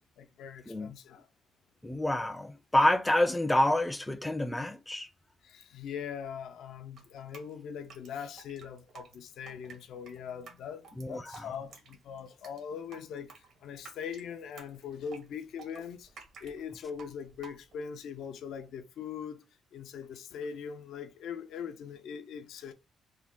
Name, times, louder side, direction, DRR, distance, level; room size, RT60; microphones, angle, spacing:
voice 1, 0.2-1.3 5.4-19.4 19.7-22.7, left 7 dB, 75° left, 0.4 m, -41 dB
voice 2, 1.8-5.1 11.0-11.2, left 1 dB, 10° left, 0.4 m, -27 dB
Drip, 7.0-17.9, right 4 dB, 70° right, 1.0 m, -53 dB
3.6 x 2.1 x 3.6 m
cardioid pair, 90°, 0 cm